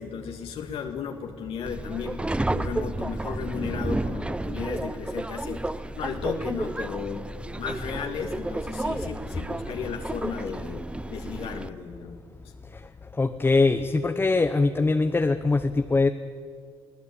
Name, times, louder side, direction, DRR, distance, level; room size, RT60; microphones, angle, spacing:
voice 1, 0.0-2.2 2.5-7.3 7.6-12.2, left 7 dB, 65° left, 2 dB, 2.2 m, -35 dB
Subway metro underground, 1.6-11.7, right 2 dB, 10° right, 0.7 m, -32 dB
voice 2, 13.2-16.1, left 3 dB, 20° left, 7 dB, 1.1 m, -22 dB
23.5 x 16.5 x 8.7 m, 2.1 s
supercardioid pair, 75°, 10 cm